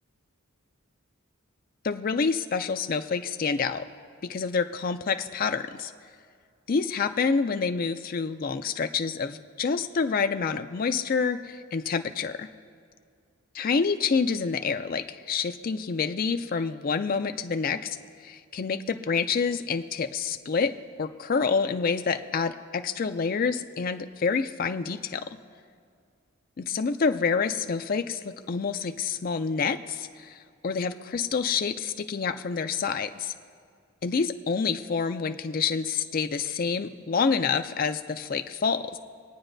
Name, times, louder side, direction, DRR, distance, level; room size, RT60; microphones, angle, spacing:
voice 1, 1.8-3.9 4.2-5.9 6.7-12.5 13.5-18.0 18.2-20.7 21.0-25.2 26.6-33.3 34.0-39.0, left 5 dB, 40° left, 8 dB, 0.4 m, -27 dB
21.5 x 8.8 x 2.6 m, 2.2 s
head